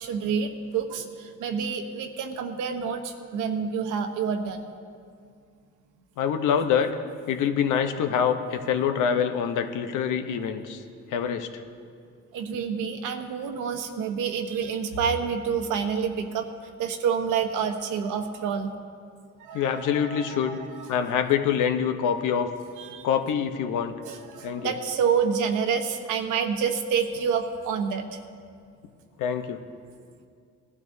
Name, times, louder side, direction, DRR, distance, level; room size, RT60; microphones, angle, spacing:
voice 1, 0.0-4.7 12.3-16.5 16.8-18.7 19.4-20.9 22.8-23.1 24.0-28.2, right 6 dB, 85° right, 5 dB, 1.1 m, -28 dB
voice 2, 6.2-6.9 7.3-10.8 11.1-11.6 19.5-20.6 20.9-22.5 23.0-23.9 24.4-24.7 29.2-29.6, left 8 dB, 85° left, 8 dB, 0.9 m, -25 dB
19.0 x 12.0 x 2.7 m, 2.2 s
cardioid pair, 90°, 30 cm